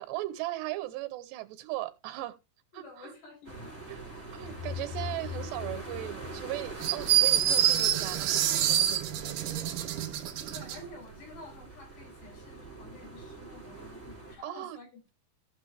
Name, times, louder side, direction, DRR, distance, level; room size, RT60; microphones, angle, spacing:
voice 1, 0.0-2.4 2.7-3.1 3.9-9.7 14.4-14.8, right 16 dB, 85° right, 3.1 m, -38 dB
voice 2, 2.7-3.8 10.5-15.1, left 3 dB, 75° left, 7.1 m, -50 dB
sound 1, 3.4-14.3, right 3 dB, 5° left, 4.8 m, -44 dB
sound 2, 4.4-7.3, left 8 dB, 55° left, 5.2 m, -41 dB
sound 3, 6.8-10.8, right 11 dB, 70° right, 2.2 m, -26 dB
15.5 x 6.4 x 3.4 m
omnidirectional pair, 4.9 m